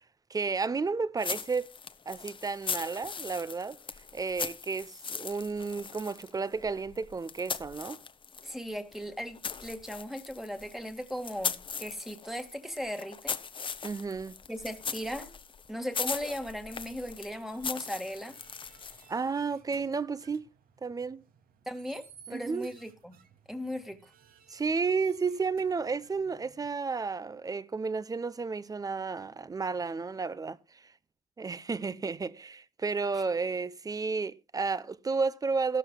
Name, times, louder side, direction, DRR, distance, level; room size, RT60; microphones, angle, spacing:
voice 1, 0.3-1.7 2.1-3.8 4.1-8.0 13.8-14.4 19.1-20.4 20.8-21.2 22.3-22.7 24.5-30.9 31.4-35.8, right 4 dB, 20° right, 0.9 m, -32 dB
sound 1, 1.2-8.6 8.9-19.2, left 6 dB, 30° left, 1.1 m, -39 dB
voice 2, 8.4-13.4 14.5-15.3 15.7-18.4 21.7-23.2 23.5-24.0, equal, ahead, 1.9 m, -37 dB
sound 2, 17.2-26.7, right 7 dB, 60° right, 2.6 m, -59 dB
16.5 x 13.0 x 2.3 m
cardioid pair, 110°, 17 cm